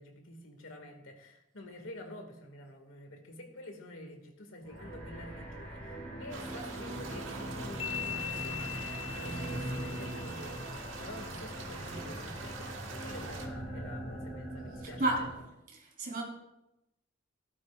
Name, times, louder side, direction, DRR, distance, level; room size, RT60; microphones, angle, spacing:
voice 1, 0.0-8.9 9.1-10.6 11.0-15.1, left 1 dB, 70° left, 2.0 m, -48 dB
sound 1, 4.6-15.4, right 1 dB, 10° left, 4.4 m, -41 dB
sound 2, 6.3-13.5, right 3 dB, 70° right, 1.5 m, -44 dB
sound 3, 7.8-11.3, left 9 dB, 30° left, 0.8 m, -42 dB
voice 2, 14.8-15.3 15.7-16.2, right 2 dB, 45° right, 3.5 m, -32 dB
16.0 x 12.5 x 2.4 m
head